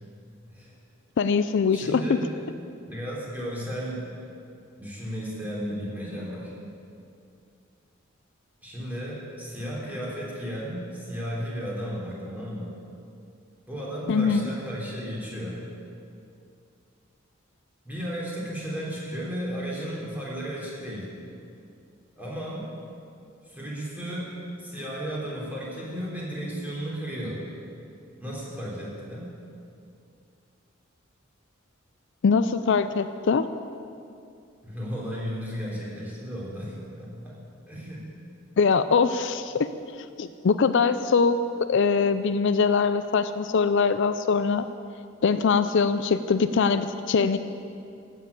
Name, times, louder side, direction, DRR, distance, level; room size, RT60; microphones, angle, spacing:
voice 1, 1.2-2.0 14.1-14.5 32.2-33.5 38.6-39.7 40.2-44.7 45.2-47.4, left 5 dB, 65° left, 11 dB, 0.4 m, -22 dB
voice 2, 1.7-2.3 2.8-4.1 4.8-6.5 8.6-12.7 13.7-15.7 17.8-21.1 22.2-22.7 23.5-27.5 28.2-29.3 34.6-37.4 37.7-38.1, equal, 10° right, -6 dB, 3.5 m, -34 dB
14.5 x 7.5 x 8.3 m, 2.5 s
head